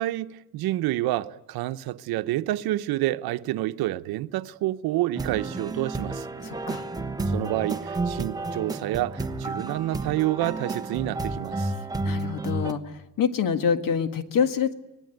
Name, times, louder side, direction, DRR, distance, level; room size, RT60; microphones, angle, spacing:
voice 1, 0.0-6.3 7.3-11.7, right 15 dB, 85° right, 0.9 m, -28 dB
sound 1, 5.2-12.7, right 2 dB, 10° right, 1.0 m, -31 dB
voice 2, 6.4-6.9 12.0-14.7, left 7 dB, 60° left, 1.8 m, -26 dB
25.0 x 19.0 x 9.2 m
cardioid pair, 140°, 36 cm